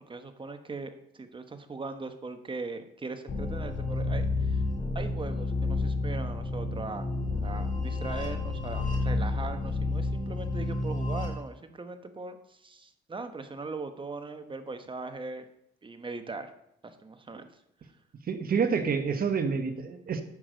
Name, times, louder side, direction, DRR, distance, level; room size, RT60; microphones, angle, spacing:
voice 1, 0.1-4.6 4.9-7.0 7.4-15.4 15.8-16.5 16.8-17.5, right 3 dB, 25° right, 8 dB, 1.1 m, -40 dB
sound 1, 3.3-11.3, left 2 dB, 40° left, 2.6 m, -30 dB
voice 2, 18.2-20.2, right 5 dB, 45° right, 8 dB, 1.3 m, -28 dB
9.7 x 6.1 x 5.1 m, 0.78 s
cardioid pair, 90°, 20 cm